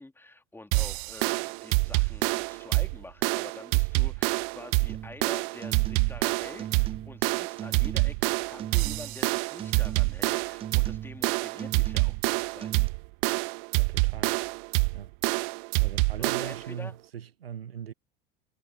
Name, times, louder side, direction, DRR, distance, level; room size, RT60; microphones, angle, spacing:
voice 1, 0.0-12.7 16.2-17.0, left 2 dB, 10° left, 2.8 m, -46 dB
sound 1, 0.7-16.7, right 34 dB, 55° right, 0.7 m, -27 dB
sound 2, 4.9-5.2 5.6-6.3 6.6-7.3 7.6-8.2 8.6-9.3 9.6-10.2 10.6-11.3 11.6-12.3 12.6-12.9, right 10 dB, 20° right, 0.3 m, -39 dB
voice 2, 13.8-14.5 14.9-15.1 15.8-17.9, right 9 dB, 85° right, 1.1 m, -40 dB
figure-of-eight pair, 70°, 29 cm